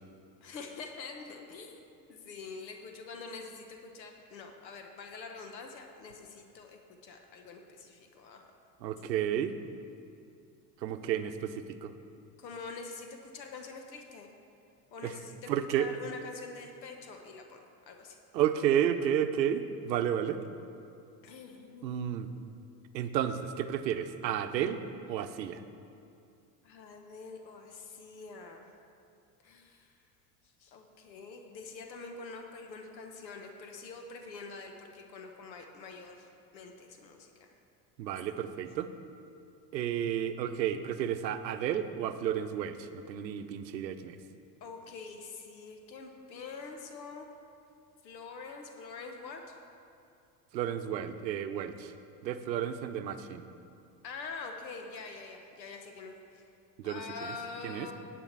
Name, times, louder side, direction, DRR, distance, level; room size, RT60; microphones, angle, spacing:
voice 1, 0.4-1.8 2.1-8.5 12.4-14.3 14.9-18.2 21.2-22.1 26.6-28.7 29.4-29.9 30.6-36.3 36.5-37.5 44.6-47.3 48.0-49.6 52.5-52.6 54.0-56.4 56.8-57.9, left 4 dB, 85° left, 4 dB, 1.1 m, -45 dB
voice 2, 8.8-9.5 10.8-11.9 15.0-15.2 15.5-15.9 18.3-20.4 21.8-22.3 22.9-24.8 25.1-25.6 38.0-38.9 39.7-44.2 50.5-51.9 52.2-53.5 56.8-57.3 57.6-57.9, right 9 dB, 85° right, 9 dB, 0.7 m, -32 dB
10.0 x 5.0 x 8.1 m, 2.5 s
hypercardioid pair, 80°, 50 cm